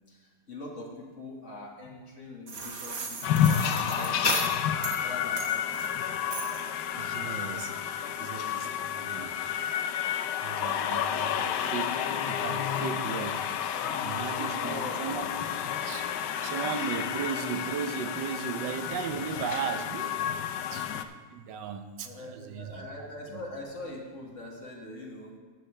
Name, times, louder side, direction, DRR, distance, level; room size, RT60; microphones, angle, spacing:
voice 1, 0.1-4.5 5.0-5.8 13.8-15.1 22.0-25.3, left 2 dB, 45° left, -2 dB, 1.9 m, -42 dB
sound 1, 2.5-5.0 5.4-6.0 6.3-6.7, right 4 dB, 50° right, 1.3 m, -35 dB
sound 2, 3.2-21.0, left 9 dB, 80° left, 1.2 m, -30 dB
voice 2, 6.9-7.7 8.0-9.3 10.4-13.4 14.0-15.2 15.8-16.1 16.4-20.3 20.7-20.9 21.3-22.8 23.3-23.4, right 6 dB, 85° right, 7 dB, 1.4 m, -36 dB
14.0 x 7.9 x 3.3 m, 1.4 s
omnidirectional pair, 1.9 m